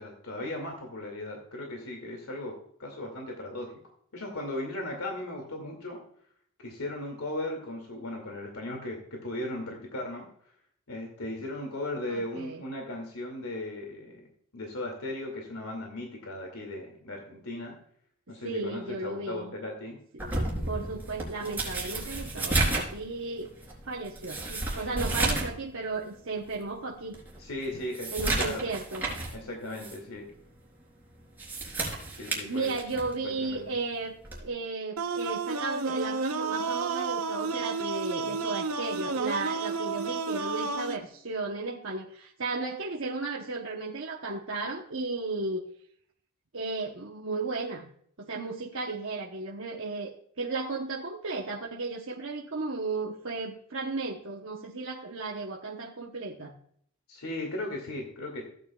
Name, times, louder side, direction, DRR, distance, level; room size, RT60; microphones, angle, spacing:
voice 1, 0.0-3.7 4.1-6.0 6.6-10.3 10.9-14.3 14.5-17.7 18.3-20.0 27.4-28.6 29.3-30.2 32.2-32.7 33.4-33.7 57.1-58.4, left 1 dB, 85° left, 1 dB, 2.4 m, -37 dB
voice 2, 12.1-12.6 18.3-19.5 20.1-20.2 20.6-23.5 23.8-27.1 28.1-29.0 32.4-45.6 46.5-47.9 48.2-56.6, right 3 dB, 60° right, -1 dB, 1.0 m, -34 dB
sound 1, 20.2-25.6 25.9-26.0 26.6-26.7 27.1-29.4 29.7-30.0 31.2-33.2 34.2-34.5, right 2 dB, 10° right, 3.6 m, -32 dB
sound 2, 35.0-41.0, right 4 dB, 85° right, 0.9 m, -31 dB
16.0 x 9.3 x 2.4 m, 0.63 s
head